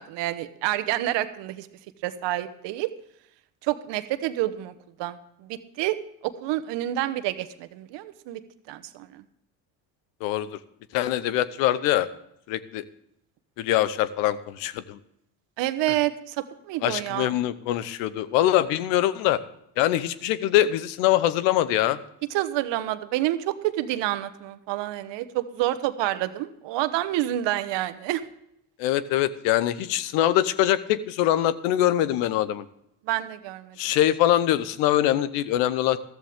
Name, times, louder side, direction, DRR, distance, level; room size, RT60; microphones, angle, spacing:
voice 1, 0.0-1.7 2.0-2.9 3.6-4.7 5.0-6.0 6.2-8.4 8.7-9.2 15.6-16.4 16.7-17.3 22.3-28.2 33.0-33.8, right 14 dB, 70° right, 11 dB, 1.2 m, -28 dB
voice 2, 10.9-12.1 12.5-12.8 13.6-15.0 16.8-19.4 19.8-22.0 28.8-32.6 33.8-36.0, left 13 dB, 80° left, 16 dB, 1.0 m, -23 dB
14.5 x 13.5 x 3.6 m, 0.77 s
supercardioid pair, 70°, 44 cm